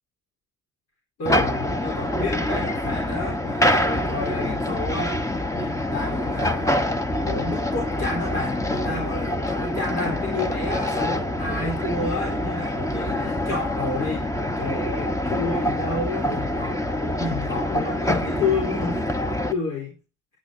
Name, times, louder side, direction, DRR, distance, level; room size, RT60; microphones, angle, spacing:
voice 1, 1.2-5.2 5.5-6.7 7.2-14.3 14.6-16.9 17.2-20.0, left 3 dB, 60° left, -1 dB, 4.1 m, -30 dB
sound 1, 1.3-19.5, left 1 dB, 10° left, 1.2 m, -25 dB
18.5 x 9.5 x 2.8 m, 0.30 s
cardioid pair, 90°, 30 cm